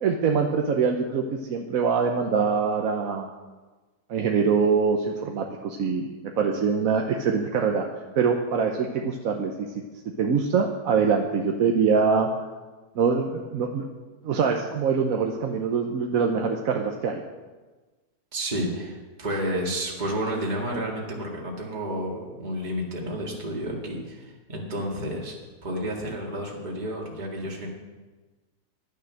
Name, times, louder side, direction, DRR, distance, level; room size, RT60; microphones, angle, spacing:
voice 1, 0.0-3.3 4.1-7.9 8.2-9.7 10.2-12.3 13.0-13.8 14.2-17.2, right 5 dB, 60° right, 2 dB, 1.1 m, -24 dB
voice 2, 18.3-25.4 25.6-27.7, equal, 25° right, -2 dB, 2.1 m, -31 dB
12.0 x 9.3 x 6.4 m, 1.3 s
omnidirectional pair, 1.8 m